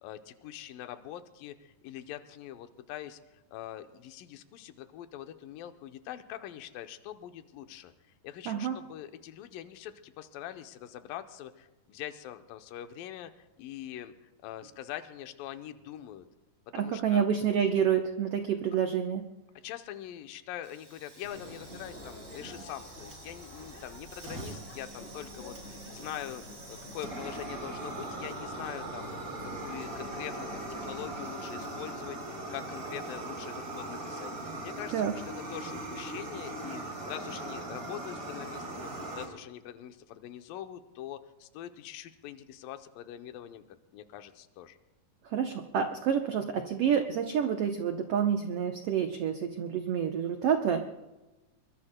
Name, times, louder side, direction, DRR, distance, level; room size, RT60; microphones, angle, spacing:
voice 1, 0.0-3.2 3.5-7.9 8.2-16.3 16.8-17.2 19.6-35.2 35.5-43.6 43.9-44.8, left 12 dB, 85° left, 8 dB, 2.5 m, -43 dB
voice 2, 8.5-8.8 16.7-19.2 34.9-35.1 45.2-50.9, right 8 dB, 85° right, 5 dB, 1.3 m, -28 dB
Fire, 20.6-39.2, right 2 dB, 30° right, 4.0 m, -41 dB
sound 1, 21.2-31.2, equal, 15° left, 6.1 m, -47 dB
23.5 x 22.5 x 2.2 m, 1.1 s
omnidirectional pair, 3.9 m